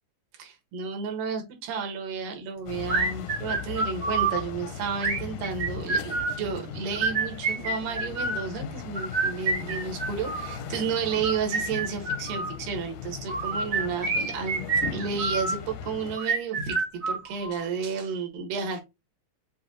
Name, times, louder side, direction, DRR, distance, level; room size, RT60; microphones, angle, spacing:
voice 1, 0.4-16.8 17.1-18.8, right 6 dB, 75° right, 3 dB, 2.9 m, -32 dB
sound 1, 2.7-16.2, left 7 dB, 80° left, 1.6 m, -38 dB
sound 2, 2.9-4.4 5.0-6.4 6.9-8.5 9.0-10.5 11.1-12.5 13.3-15.6 16.2-17.6, right 3 dB, 50° right, 1.4 m, -28 dB
6.8 x 2.7 x 2.7 m, 0.23 s
omnidirectional pair, 4.0 m